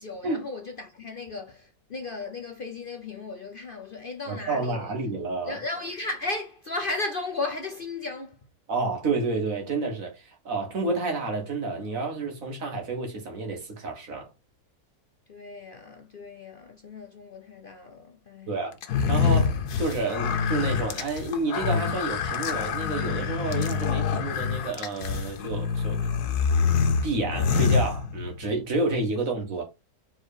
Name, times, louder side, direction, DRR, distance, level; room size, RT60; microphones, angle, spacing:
voice 1, 0.0-4.9 5.5-8.4 15.3-18.5, left 3 dB, 45° left, 0.8 m, -35 dB
voice 2, 4.3-5.6 8.7-14.3 18.5-18.8 19.1-26.1 27.0-29.6, right 3 dB, 60° right, 2.0 m, -30 dB
sound 1, 18.8-28.5, left 6 dB, 90° left, 1.4 m, -26 dB
4.6 x 4.3 x 4.9 m
omnidirectional pair, 1.6 m